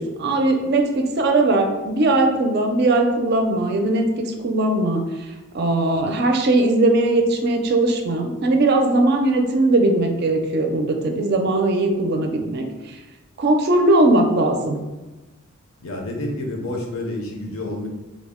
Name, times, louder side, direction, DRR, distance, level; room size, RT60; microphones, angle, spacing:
voice 1, 0.0-5.0 5.5-13.0 13.4-14.8, right 2 dB, 50° right, 4 dB, 0.4 m, -19 dB
voice 2, 15.8-17.9, left 1 dB, 75° left, 1 dB, 0.7 m, -29 dB
3.5 x 2.1 x 3.5 m, 1.1 s
head